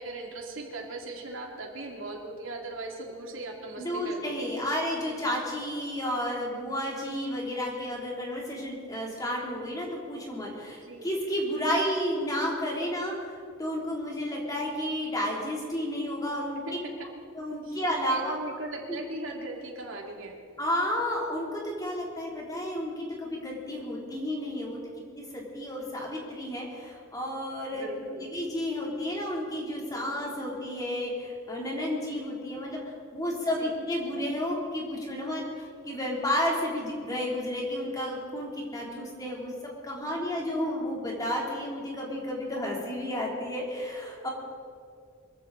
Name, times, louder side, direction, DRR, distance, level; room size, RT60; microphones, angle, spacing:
voice 1, 0.0-4.5 10.9-11.1 16.7-16.8 17.6-20.3 27.7-28.2 33.6-33.7, right 2 dB, 70° right, 0 dB, 2.7 m, -39 dB
voice 2, 3.8-16.6 17.4-18.3 18.9-19.0 20.6-24.8 25.1-39.5 39.8-44.3, equal, 20° left, -3 dB, 3.2 m, -32 dB
23.5 x 15.0 x 4.1 m, 2.4 s
head